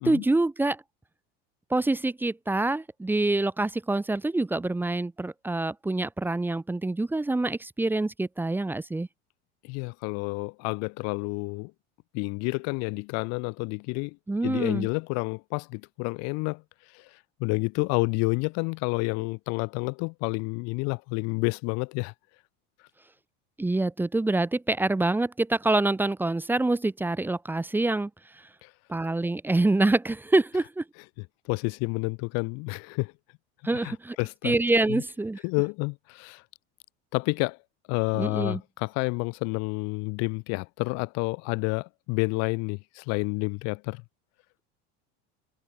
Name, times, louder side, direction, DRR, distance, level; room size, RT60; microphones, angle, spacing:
voice 1, 0.1-0.8 1.7-9.1 14.3-14.9 23.6-28.1 28.9-30.8 33.6-34.2 34.4-35.4 38.1-38.6, right 2 dB, 5° right, 1.6 m, -26 dB
voice 2, 9.6-11.7 12.1-14.2 14.4-16.6 16.9-22.1 28.6-28.7 31.5-33.1 33.8-34.6 34.9-35.0 35.4-36.4 37.1-37.6 37.9-44.0, left 31 dB, 60° left, 1.3 m, -29 dB
cardioid pair, 155°, 30 cm